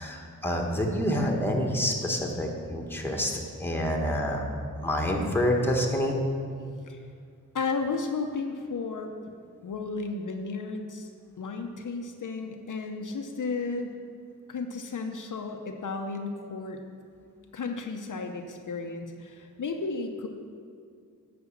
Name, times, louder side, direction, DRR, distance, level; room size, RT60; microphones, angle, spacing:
voice 1, 0.0-4.4 4.8-6.2, equal, 5° left, 0 dB, 1.4 m, -27 dB
voice 2, 7.5-9.1 9.6-11.1 11.4-14.0 14.5-16.8 17.5-20.3, left 4 dB, 65° left, 4 dB, 0.8 m, -33 dB
9.6 x 5.1 x 7.2 m, 2.3 s
wide cardioid pair, 80°, 33 cm